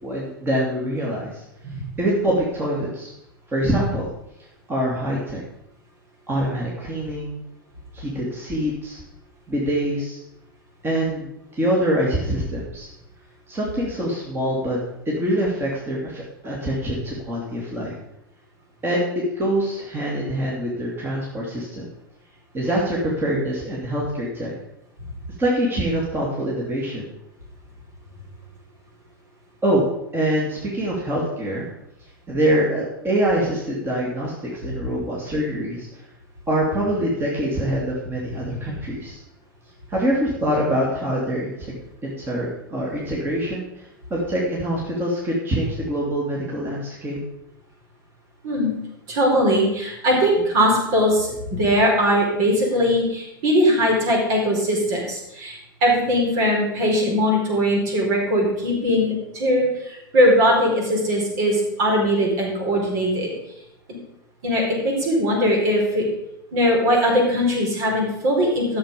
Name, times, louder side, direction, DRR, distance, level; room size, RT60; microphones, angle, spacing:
voice 1, 0.0-1.4 2.0-3.1 3.5-4.1 4.7-5.4 6.3-7.4 7.9-9.0 9.5-10.2 10.8-12.9 13.5-14.8 15.1-17.9 18.8-21.8 22.5-24.5 25.4-27.0 29.6-29.8 30.1-31.7 32.3-35.9 36.5-39.2 39.9-43.8 44.1-47.2, right 1 dB, 20° right, -4 dB, 2.6 m, -24 dB
voice 2, 49.1-63.3 64.4-66.0 66.5-68.8, equal, 50° right, -1 dB, 4.5 m, -20 dB
13.0 x 7.0 x 5.3 m, 0.83 s
figure-of-eight pair, 90°, 12 cm